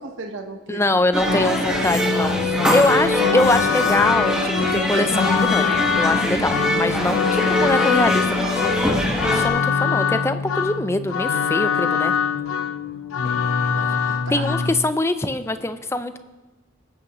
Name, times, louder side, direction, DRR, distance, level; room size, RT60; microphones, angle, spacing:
voice 1, 0.0-1.6 2.7-2.9 7.4-7.5 13.2-14.5, right 3 dB, 70° right, 4 dB, 1.0 m, -37 dB
voice 2, 0.7-5.6 6.0-8.3 8.6-12.1 14.3-16.2, left 2 dB, 15° left, 11 dB, 0.4 m, -23 dB
sound 1, 1.1-9.5, equal, 5° right, 1.4 m, -23 dB
sound 2, 1.3-14.7, left 6 dB, 85° left, 0.6 m, -23 dB
21.0 x 8.6 x 3.0 m, 1.2 s
head